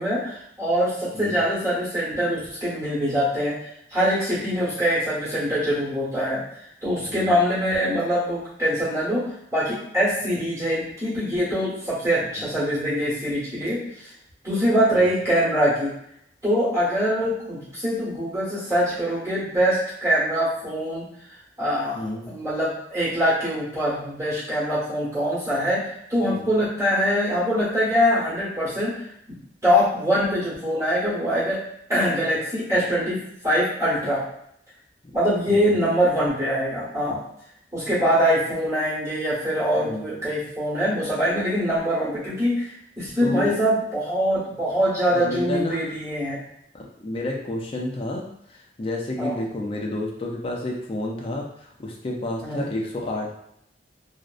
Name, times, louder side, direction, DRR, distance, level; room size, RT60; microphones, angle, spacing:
voice 1, 0.0-3.6 3.9-6.4 6.8-9.2 9.5-14.1 14.4-15.9 16.4-21.1 21.6-29.0 29.3-29.4 29.6-31.6 31.9-34.2 35.1-37.2 37.7-42.7 43.0-46.4 49.2-49.4 52.4-52.7, equal, 15° right, -9 dB, 1.0 m, -23 dB
voice 2, 6.9-7.3 12.4-12.5 14.9-15.1 21.9-22.3 26.3-26.5 35.5-35.7 39.8-40.2 43.2-43.5 45.1-46.0 46.7-48.3 48.8-53.3, left 1 dB, 30° left, -1 dB, 0.4 m, -30 dB
2.6 x 2.0 x 2.4 m, 0.73 s
head